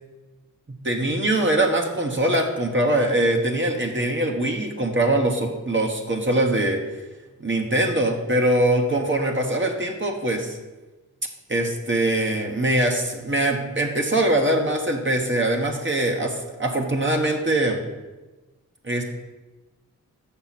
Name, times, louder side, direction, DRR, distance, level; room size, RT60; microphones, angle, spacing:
voice 1, 0.8-6.8 7.4-10.6 11.5-17.8 18.8-19.0, right 1 dB, 40° right, 2 dB, 1.2 m, -22 dB
7.0 x 5.8 x 5.9 m, 1.2 s
cardioid pair, 55°, 31 cm